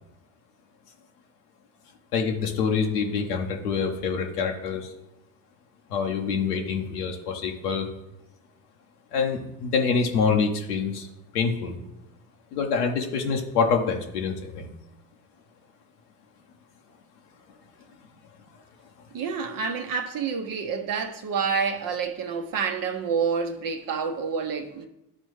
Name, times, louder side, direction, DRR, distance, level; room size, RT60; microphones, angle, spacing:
voice 1, 2.1-4.9 5.9-7.9 9.1-11.1 11.3-11.8 12.5-14.7, left 5 dB, 85° left, 0.9 m, -26 dB
voice 2, 19.1-24.9, right 6 dB, 45° right, 0.9 m, -28 dB
12.0 x 4.4 x 3.1 m
hypercardioid pair, 60°, 45 cm